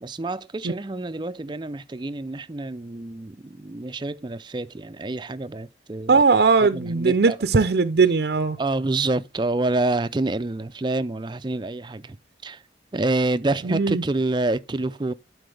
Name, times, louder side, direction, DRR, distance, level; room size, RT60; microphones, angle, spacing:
voice 1, 0.0-6.2 6.6-7.4 8.6-12.2 12.4-12.6 12.9-15.1, right 2 dB, 25° right, 0.4 m, -27 dB
voice 2, 6.1-8.6 13.6-14.0, right 4 dB, 65° right, 0.6 m, -19 dB
11.5 x 4.7 x 3.3 m
head